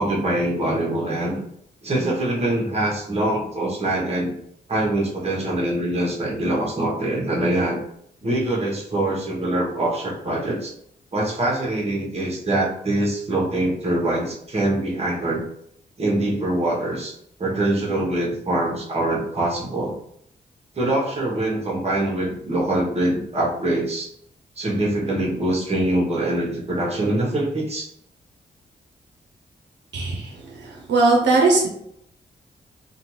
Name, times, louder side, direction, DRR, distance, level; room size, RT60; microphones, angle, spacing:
voice 1, 0.0-1.4 1.8-4.3 4.7-7.8 8.2-10.7 11.1-15.4 16.0-17.1 17.4-19.9 20.8-24.1 24.6-27.9, right 1 dB, 35° right, -2 dB, 0.9 m, -24 dB
voice 2, 29.9-31.7, right 3 dB, 85° right, 0 dB, 0.6 m, -19 dB
2.6 x 2.2 x 3.0 m, 0.71 s
cardioid pair, 65°, 18 cm